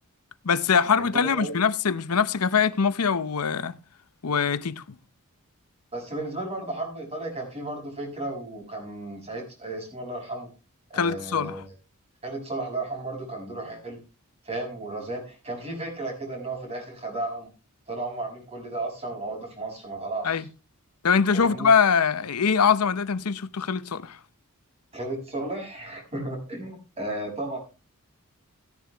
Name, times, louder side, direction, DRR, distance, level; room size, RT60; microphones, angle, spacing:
voice 1, 0.4-3.7 4.2-4.8 10.9-11.6 20.2-20.4 21.0-24.2, left 6 dB, 90° left, 0.7 m, -23 dB
voice 2, 1.0-1.6 5.9-10.5 10.9-11.7 12.2-14.0 14.4-17.5 17.9-20.5 21.3-21.7 24.9-27.6, right 2 dB, 30° right, 6.7 m, -34 dB
15.0 x 10.5 x 3.5 m
head